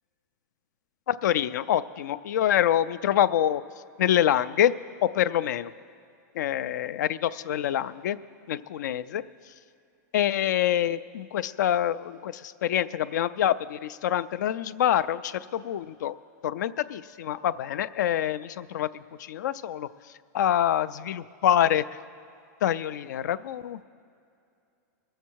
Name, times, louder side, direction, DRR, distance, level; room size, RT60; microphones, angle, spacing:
voice 1, 1.1-3.6 4.0-4.7 5.0-5.7 6.4-8.2 8.5-9.2 10.1-16.2 16.4-19.9 20.3-21.8 22.6-23.8, left 11 dB, 80° left, 15 dB, 0.4 m, -26 dB
20.5 x 7.3 x 4.6 m, 2.5 s
supercardioid pair, 175°, 10 cm